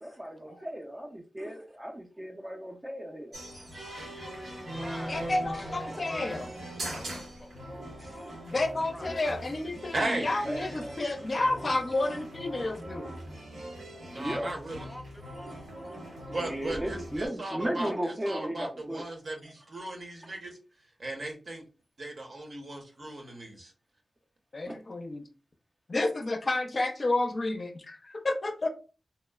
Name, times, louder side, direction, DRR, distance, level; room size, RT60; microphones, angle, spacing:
voice 1, 0.0-4.0 4.5-7.0 8.0-8.3 9.1-9.2 10.4-11.0 11.6-11.7 12.0-12.2 13.7-14.7 15.4-15.5 15.9-16.0 16.3-19.0 19.4-19.5 20.1-20.3 23.2-23.4 24.7-24.8, right 1 dB, 25° right, 0.4 m, -37 dB
sound 1, 3.3-17.3, right 1 dB, 90° right, 1.1 m, -42 dB
voice 2, 3.9-4.5 4.8-5.2 5.6-7.6 8.1-8.4 8.9-9.2 10.1-10.2 10.6-10.9 14.7-15.3, equal, 10° left, 0.7 m, -47 dB
voice 3, 5.1-6.5 8.4-13.1 24.5-25.2 25.9-28.7, left 2 dB, 50° left, 0.4 m, -30 dB
voice 4, 9.9-10.3 14.1-14.9 16.3-20.6 21.0-21.6 22.0-23.7, right 2 dB, 60° right, 0.8 m, -36 dB
2.9 x 2.0 x 2.3 m
cardioid pair, 60°, 0 cm